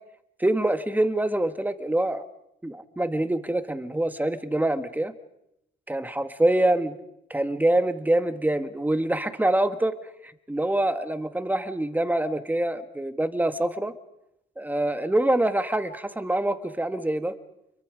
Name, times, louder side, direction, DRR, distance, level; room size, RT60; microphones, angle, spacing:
voice 1, 0.4-2.2 2.6-5.1 5.9-6.9 7.3-9.9 10.5-13.9 14.6-17.3, right 1 dB, 10° right, 10 dB, 1.6 m, -25 dB
29.0 x 23.0 x 5.0 m, 0.84 s
cardioid pair, 90°, 20 cm